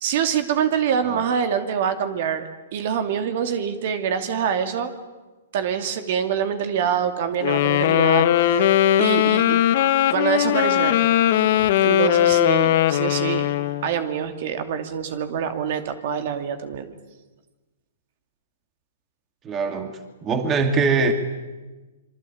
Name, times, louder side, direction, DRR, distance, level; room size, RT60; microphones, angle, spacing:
voice 1, 0.0-2.4 2.7-4.9 5.5-8.7 9.0-9.6 10.1-11.0 11.8-13.5 13.8-16.9, right 8 dB, 50° right, 8 dB, 2.7 m, -25 dB
Wind instrument woodwind instrument, 7.4-13.9, left 11 dB, 50° left, 1.7 m, -19 dB
voice 2, 19.4-19.9 20.2-21.1, right 4 dB, 20° right, 6 dB, 2.5 m, -22 dB
26.0 x 24.0 x 8.8 m, 1.2 s
hypercardioid pair, 140°, 0 cm